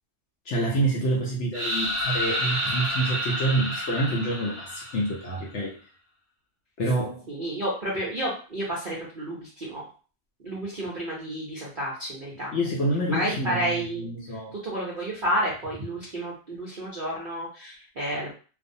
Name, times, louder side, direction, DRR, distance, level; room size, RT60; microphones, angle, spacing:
voice 1, 0.5-5.8 6.8-7.3 12.5-14.5, right 1 dB, 70° left, -3 dB, 0.7 m, -27 dB
sound 1, 1.5-5.4, equal, 35° right, 0.9 m, -29 dB
voice 2, 7.3-9.8 10.4-12.5 13.1-14.1 14.5-18.3, right 1 dB, 55° right, -5 dB, 0.5 m, -31 dB
2.5 x 2.0 x 2.6 m, 0.38 s
omnidirectional pair, 1.6 m